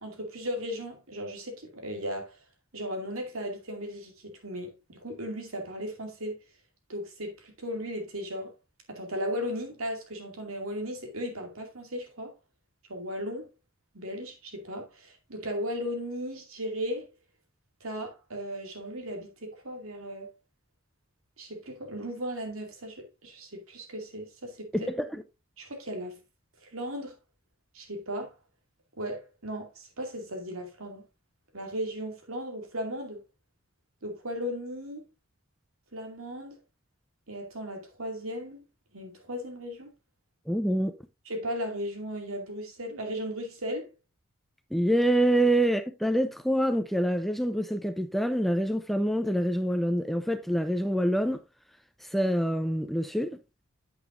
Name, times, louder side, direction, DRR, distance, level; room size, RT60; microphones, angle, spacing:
voice 1, 0.0-2.4 2.7-6.4 6.9-8.5 8.9-12.3 12.9-13.5 13.9-17.1 17.8-20.3 21.4-24.9 25.6-26.2 26.6-27.2 27.7-28.3 29.0-31.0 31.5-33.2 34.0-35.0 35.9-36.6 37.3-38.7 38.9-39.9 41.3-43.9, equal, 85° right, 2.5 m, -36 dB
voice 2, 24.7-25.2 40.5-40.9 44.7-51.4 52.0-53.4, right 1 dB, ahead, 0.5 m, -26 dB
9.1 x 8.1 x 2.6 m
head